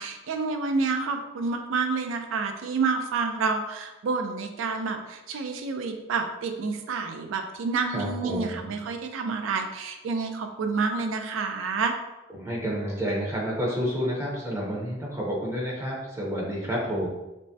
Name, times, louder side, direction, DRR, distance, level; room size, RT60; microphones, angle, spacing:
voice 1, 0.0-11.9, right 4 dB, 80° right, 6 dB, 0.3 m, -29 dB
voice 2, 7.9-8.6 12.3-17.1, equal, 15° right, -5 dB, 0.5 m, -29 dB
3.3 x 2.0 x 2.6 m, 1.0 s
head